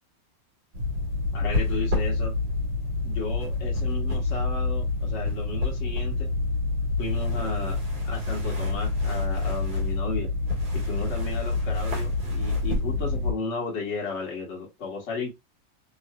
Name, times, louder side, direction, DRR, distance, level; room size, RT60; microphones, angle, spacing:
sound 1, 0.7-13.3, left 3 dB, 60° right, 2.0 m, -27 dB
voice 1, 1.3-2.3 3.0-6.3 7.0-10.3 10.7-15.3, left 3 dB, 45° left, 1.3 m, -34 dB
3.7 x 3.0 x 2.3 m
omnidirectional pair, 2.0 m